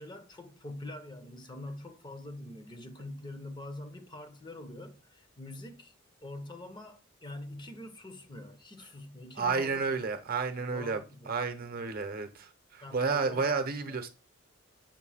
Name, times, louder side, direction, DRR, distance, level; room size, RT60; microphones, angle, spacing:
voice 1, 0.0-5.9 6.2-10.0 10.6-11.3 12.8-13.6 13.9-14.0, left 1 dB, 20° left, 0.7 m, -45 dB
voice 2, 9.4-14.1, right 4 dB, 45° right, 0.7 m, -31 dB
7.2 x 2.7 x 5.5 m
head